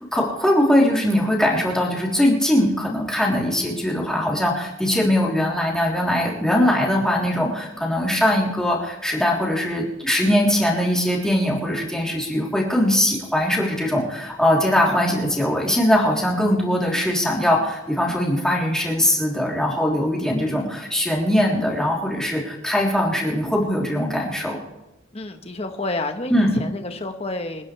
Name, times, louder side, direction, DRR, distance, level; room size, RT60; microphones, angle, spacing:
voice 1, 0.1-24.6 26.3-26.5, left 1 dB, 5° left, -4 dB, 3.3 m, -21 dB
voice 2, 25.1-27.6, left 2 dB, 30° left, 6 dB, 1.2 m, -29 dB
28.0 x 10.5 x 3.3 m, 1.0 s
head